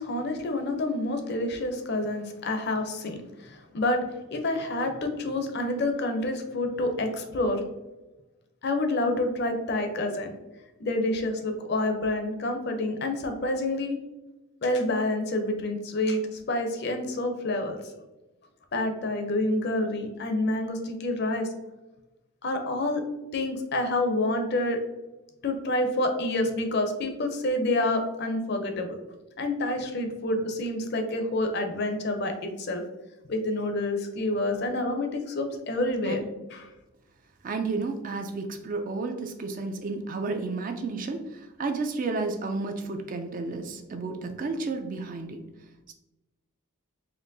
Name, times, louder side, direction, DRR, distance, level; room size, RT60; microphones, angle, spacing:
voice 1, 0.0-4.0 4.3-7.6 8.6-10.3 10.8-14.0 14.6-16.2 16.5-17.8 18.7-21.5 22.4-23.0 23.3-24.8 25.4-29.0 29.4-32.8 33.3-36.2 36.5-36.6, left 2 dB, 50° left, 5 dB, 0.5 m, -28 dB
voice 2, 37.4-45.4 45.9-46.0, right 3 dB, 40° right, 6 dB, 0.3 m, -32 dB
4.3 x 2.9 x 2.6 m, 1.0 s
head